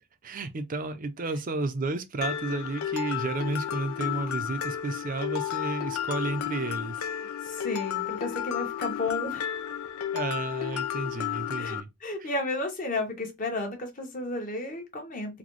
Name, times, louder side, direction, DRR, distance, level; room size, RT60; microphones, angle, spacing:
voice 1, 0.2-7.1 10.1-11.9 12.2-12.3, right 3 dB, 40° right, 0.5 m, -32 dB
Mallet percussion, 2.2-11.8, left 10 dB, 85° left, 0.4 m, -32 dB
voice 2, 7.4-9.6 11.6-15.4, left 2 dB, 40° left, 1.1 m, -33 dB
4.0 x 2.2 x 3.1 m
head